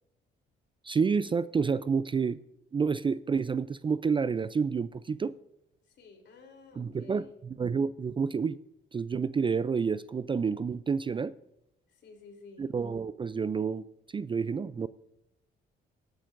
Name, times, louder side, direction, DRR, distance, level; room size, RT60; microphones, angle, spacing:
voice 1, 0.8-2.4 2.7-5.3 6.8-8.6 8.9-11.3 12.6-13.8 14.1-14.9, right 5 dB, 25° right, 16 dB, 0.3 m, -29 dB
voice 2, 5.9-7.4 11.9-12.7, left 4 dB, 65° left, 4 dB, 3.2 m, -53 dB
18.0 x 11.0 x 2.5 m, 0.87 s
cardioid pair, 90°, 20 cm